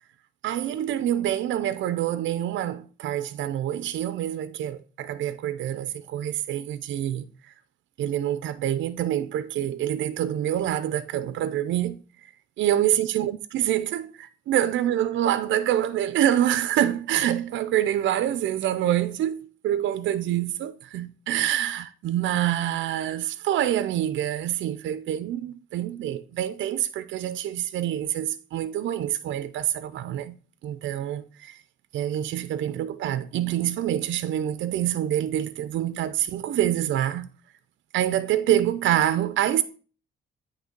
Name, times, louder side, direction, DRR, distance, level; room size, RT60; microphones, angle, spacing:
voice 1, 0.4-7.5 8.0-12.3 12.6-30.4 30.6-31.6 31.9-37.3 37.9-39.6, right 11 dB, 70° right, 0.5 m, -26 dB
8.8 x 3.2 x 5.2 m
cardioid pair, 90°, 20 cm